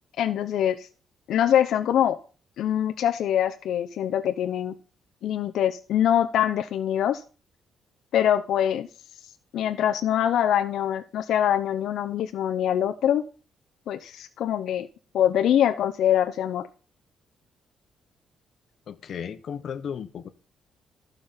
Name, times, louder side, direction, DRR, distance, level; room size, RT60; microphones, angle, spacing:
voice 1, 0.2-0.9 1.3-2.2 2.6-4.8 5.2-7.2 8.1-8.9 9.5-13.2 13.9-14.9 15.1-16.6, left 10 dB, 75° left, 7 dB, 0.7 m, -24 dB
voice 2, 18.9-20.3, left 7 dB, 55° left, 9 dB, 1.1 m, -35 dB
13.5 x 5.3 x 5.6 m, 0.37 s
cardioid pair, 135°, 0 cm